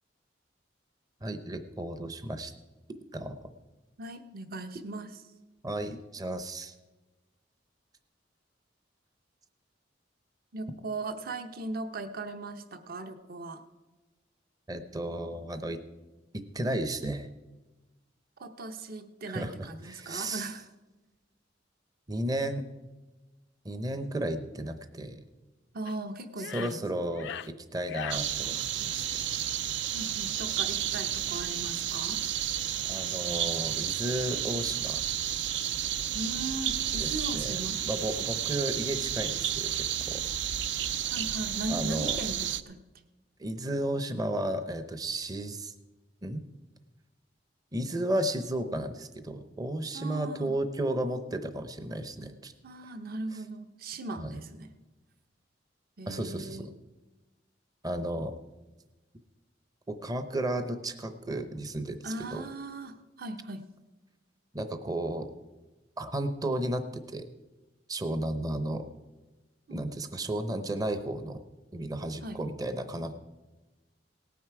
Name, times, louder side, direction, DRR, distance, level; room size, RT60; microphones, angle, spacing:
voice 1, 1.2-2.5 3.1-3.4 5.6-6.7 14.7-15.8 16.3-17.3 19.3-20.5 22.1-22.6 23.6-25.2 26.4-29.2 32.9-35.0 37.0-40.2 41.7-42.2 43.4-45.7 46.2-46.4 47.7-52.5 54.2-54.4 56.1-56.7 57.8-58.4 59.9-62.5 64.5-65.3 66.0-67.2 67.9-68.9 69.7-71.4 71.7-73.1, right 1 dB, 20° right, 9 dB, 0.6 m, -33 dB
voice 2, 4.0-5.2 10.5-13.6 18.4-20.7 25.7-26.8 29.9-32.2 36.1-37.8 41.1-42.8 49.9-50.5 52.6-54.7 56.0-56.7 62.0-63.7 69.7-69.8 72.2-72.4, right 2 dB, 55° right, 8 dB, 0.9 m, -38 dB
sound 1, 25.9-26.0 26.4-26.8 27.1-27.5 27.9-28.2, left 9 dB, 65° left, 0.4 m, -39 dB
sound 2, 28.1-42.6, right 10 dB, 70° right, 0.5 m, -32 dB
18.0 x 9.3 x 4.7 m, 1.2 s
head